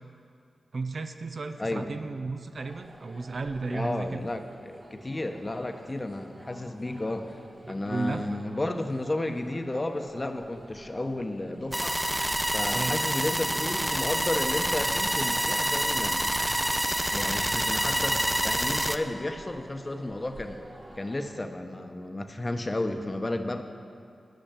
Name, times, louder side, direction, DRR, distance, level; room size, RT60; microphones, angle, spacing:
voice 1, 0.7-4.2 7.6-8.4 12.7-13.0, right 3 dB, 60° right, 9 dB, 0.6 m, -34 dB
voice 2, 1.6-1.9 3.7-7.4 7.7-12.0 12.5-16.3 17.1-20.6 21.0-23.6, left 1 dB, 30° left, 6 dB, 1.0 m, -32 dB
sound 1, 2.6-21.4, right 1 dB, 35° right, 1.9 m, -49 dB
sound 2, 11.7-19.0, right 1 dB, 10° right, 0.6 m, -27 dB
12.0 x 6.3 x 8.8 m, 2.4 s
cardioid pair, 45°, 0 cm